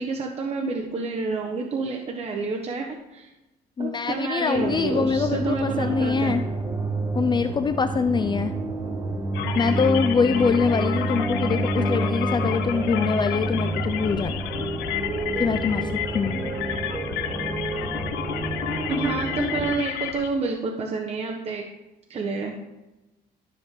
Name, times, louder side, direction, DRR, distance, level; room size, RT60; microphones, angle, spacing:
voice 1, 0.0-3.3 3.8-6.4 18.9-21.6 22.1-22.5, right 4 dB, 40° right, 1 dB, 1.2 m, -29 dB
voice 2, 3.8-6.4 7.1-8.5 9.5-14.4 15.4-16.5, left 5 dB, 25° left, 8 dB, 0.5 m, -24 dB
sound 1, 4.5-19.8, right 2 dB, 15° right, 1.2 m, -29 dB
sound 2, 9.3-20.3, left 10 dB, 90° left, 0.8 m, -31 dB
13.0 x 6.5 x 3.7 m, 1.0 s
cardioid pair, 110°, 17 cm